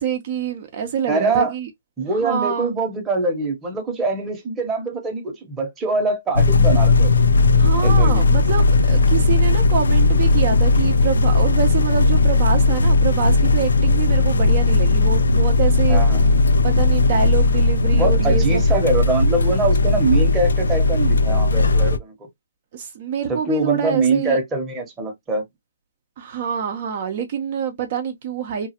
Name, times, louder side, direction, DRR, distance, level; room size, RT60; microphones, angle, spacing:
voice 1, 0.0-1.7 2.0-2.7 7.6-16.0 16.6-18.7 22.7-24.4 26.2-28.7, right 7 dB, 45° right, 0.7 m, -26 dB
voice 2, 1.1-1.5 2.0-7.1 7.8-8.3 15.9-16.4 17.9-22.1 23.3-25.4, right 3 dB, 10° right, 0.9 m, -23 dB
sound 1, 6.4-22.0, left 3 dB, 85° left, 0.4 m, -16 dB
3.0 x 2.3 x 2.8 m
hypercardioid pair, 150°, 0 cm